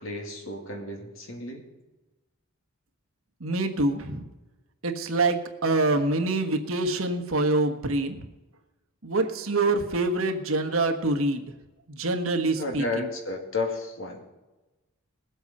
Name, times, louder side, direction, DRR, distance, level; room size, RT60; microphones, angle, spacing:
voice 1, 0.0-1.7 12.6-14.3, left 3 dB, 65° left, 2 dB, 2.3 m, -32 dB
voice 2, 3.4-4.3 4.8-8.2 9.0-11.4 11.9-13.1, right 2 dB, 75° right, 6 dB, 1.4 m, -25 dB
19.5 x 8.1 x 5.5 m, 1.1 s
head